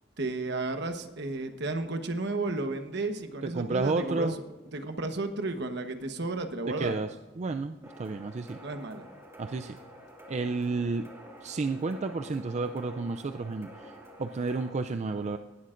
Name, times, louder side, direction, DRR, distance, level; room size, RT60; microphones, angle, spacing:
voice 1, 0.2-4.3 4.7-7.0 8.6-9.1, right 2 dB, 65° right, 7 dB, 1.1 m, -33 dB
voice 2, 3.4-4.3 6.8-7.1 7.4-8.6 9.4-9.8 10.3-11.1 11.4-15.4, right 3 dB, 40° right, 7 dB, 0.4 m, -31 dB
sound 1, 7.8-14.7, equal, 15° right, 2.1 m, -49 dB
18.5 x 12.0 x 2.5 m, 1.2 s
head